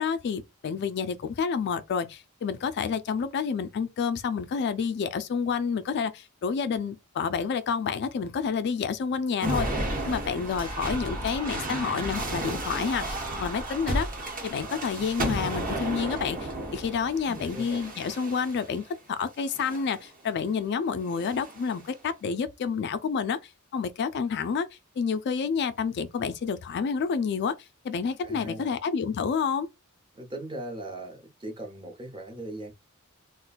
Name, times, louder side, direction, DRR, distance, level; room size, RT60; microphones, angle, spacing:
voice 1, 0.0-14.1 14.4-24.7 25.0-27.6 27.8-29.7, left 6 dB, 50° left, 0.3 m, -29 dB
sound 1, 9.4-18.8 19.5-20.0 21.1-21.8, right 1 dB, 40° right, 1.0 m, -33 dB
voice 2, 17.2-17.8 28.2-28.7 30.1-32.7, right 1 dB, 20° right, 0.7 m, -39 dB
2.4 x 2.2 x 3.9 m
head